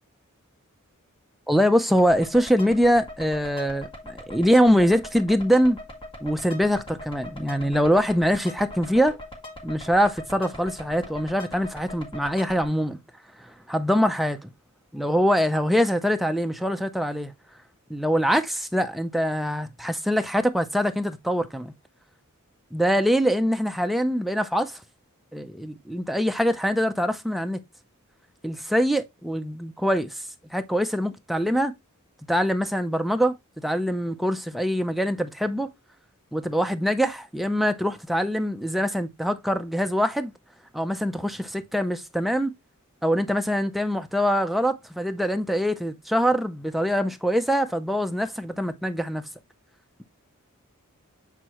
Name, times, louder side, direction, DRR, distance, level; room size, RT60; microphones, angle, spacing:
voice 1, 1.5-5.8 6.2-9.2 9.6-13.0 13.4-14.5 14.9-17.3 17.9-21.7 22.7-24.8 25.3-27.6 28.4-31.7 32.3-33.4 33.6-35.7 36.3-40.3 40.7-42.5 43.0-49.2, equal, ahead, 0.5 m, -23 dB
Alien Beeper, 2.0-12.6, left 1 dB, 25° left, 1.9 m, -41 dB
7.6 x 4.6 x 3.0 m
head